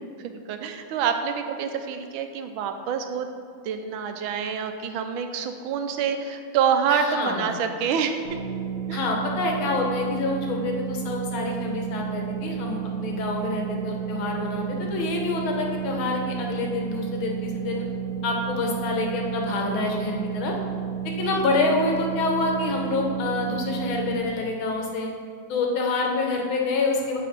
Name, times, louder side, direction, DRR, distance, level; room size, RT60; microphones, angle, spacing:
voice 1, 0.2-3.3 3.6-8.2 8.9-9.1 21.2-21.4, right 7 dB, 85° right, 7 dB, 1.4 m, -27 dB
voice 2, 6.9-7.6 8.9-17.8 18.2-20.5 21.2-25.1 25.5-27.2, left 3 dB, 85° left, 1 dB, 1.8 m, -27 dB
sound 1, 8.2-24.2, right 8 dB, 50° right, 0.9 m, -32 dB
7.7 x 4.2 x 5.2 m, 2.2 s
omnidirectional pair, 2.2 m